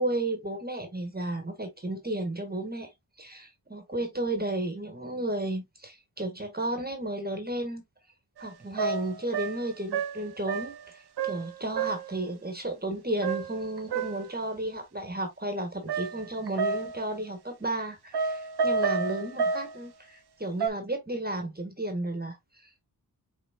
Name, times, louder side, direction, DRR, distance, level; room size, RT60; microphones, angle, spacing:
voice 1, 0.0-2.9 3.2-7.8 8.4-22.8, right 1 dB, 25° right, 1.5 m, -33 dB
sound 1, 8.4-8.5 8.8-10.9 11.2-11.5 11.8-12.1 13.2-14.3 15.9-17.1 18.1-19.8 20.6-20.7, right 5 dB, 85° right, 0.6 m, -30 dB
6.1 x 3.8 x 2.2 m
wide cardioid pair, 75°, 38 cm